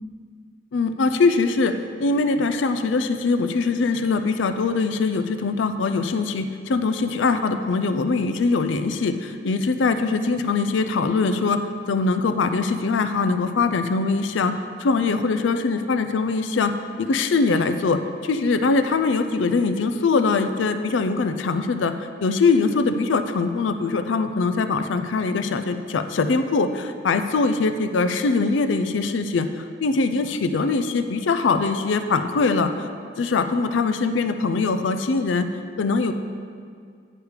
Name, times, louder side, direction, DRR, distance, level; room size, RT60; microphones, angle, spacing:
voice 1, 0.7-11.6 11.9-14.5 14.8-16.7 17.0-21.9 22.2-32.9 33.2-35.5 35.8-36.1, left 4 dB, 80° left, 9 dB, 0.4 m, -22 dB
9.7 x 4.9 x 4.8 m, 2.2 s
head